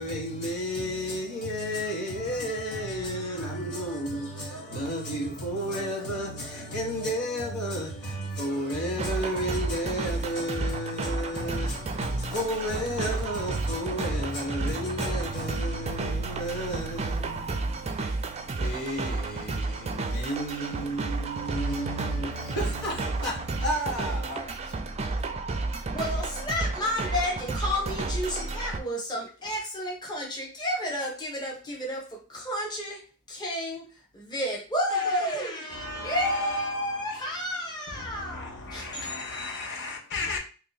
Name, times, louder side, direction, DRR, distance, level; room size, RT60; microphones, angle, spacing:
voice 1, 0.0-25.3, equal, 85° left, 1.4 m, -32 dB
sound 1, 9.0-28.8, right 3 dB, 30° right, 0.4 m, -32 dB
voice 2, 25.9-39.7, left 1 dB, 20° left, 1.0 m, -31 dB
voice 3, 35.7-37.0 37.9-40.4, left 3 dB, 55° left, 1.1 m, -37 dB
3.0 x 2.9 x 4.0 m
head